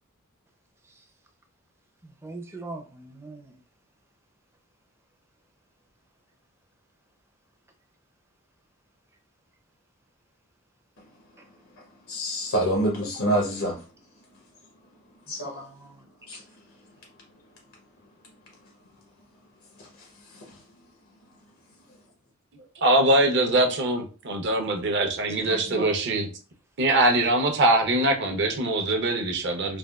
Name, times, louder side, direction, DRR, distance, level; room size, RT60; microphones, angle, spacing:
voice 1, 2.0-3.6 15.4-16.4 25.4-25.9, right 2 dB, 10° right, 0.4 m, -40 dB
voice 2, 11.7-13.8 15.3-15.6 16.3-16.4 19.8-20.6, right 1 dB, 85° left, 0.8 m, -28 dB
voice 3, 22.8-26.3 26.8-29.8, right 1 dB, 55° right, 0.6 m, -22 dB
3.4 x 2.2 x 2.3 m
head